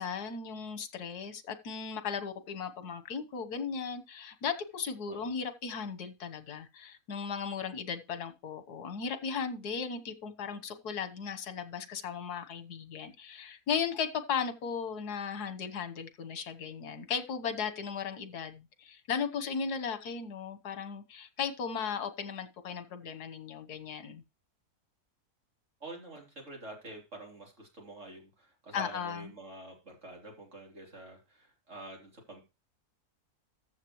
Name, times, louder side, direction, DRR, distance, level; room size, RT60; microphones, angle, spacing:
voice 1, 0.0-24.2 28.7-29.3, left 6 dB, 90° left, 1.7 m, -36 dB
voice 2, 25.8-32.4, right 2 dB, 50° right, 3.8 m, -47 dB
14.0 x 7.2 x 3.1 m
omnidirectional pair, 1.6 m